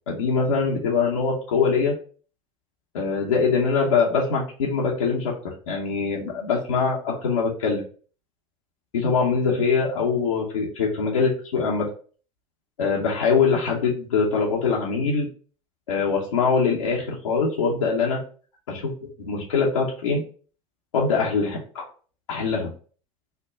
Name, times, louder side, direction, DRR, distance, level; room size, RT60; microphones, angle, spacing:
voice 1, 0.1-1.9 2.9-7.8 8.9-11.9 12.8-15.3 15.9-18.2 18.7-18.9 19.2-20.2 20.9-21.8 22.3-22.7, left 5 dB, 90° left, -4 dB, 0.8 m, -23 dB
3.3 x 2.2 x 3.8 m, 0.41 s
hypercardioid pair, 80°, 16 cm